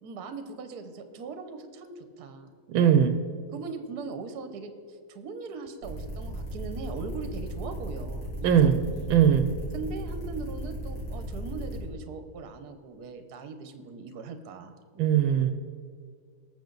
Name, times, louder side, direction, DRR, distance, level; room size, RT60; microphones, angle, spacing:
voice 1, 0.0-2.5 3.5-9.1 9.7-14.8, right 4 dB, 60° right, 9 dB, 1.3 m, -40 dB
voice 2, 2.7-3.2 8.4-8.8 9.1-9.5 15.0-15.5, right 9 dB, 80° right, 9 dB, 1.4 m, -20 dB
sound 1, 5.8-11.8, right 1 dB, 80° left, 4.5 m, -36 dB
19.0 x 7.1 x 3.9 m, 2.2 s
omnidirectional pair, 2.2 m